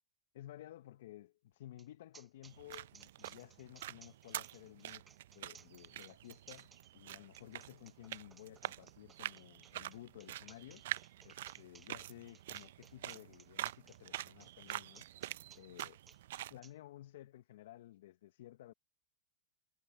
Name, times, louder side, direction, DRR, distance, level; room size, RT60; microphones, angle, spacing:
voice 1, 0.3-5.1 5.3-10.8 11.2-15.1 15.5-16.0 16.5-18.7, left 14 dB, 70° left, 0.9 m, -54 dB
sound 1, 1.8-1.9 2.1-16.7, right 5 dB, 15° right, 5.2 m, -61 dB
sound 2, 2.4-16.6, right 14 dB, 70° right, 0.4 m, -46 dB
hypercardioid pair, 115°, 0 cm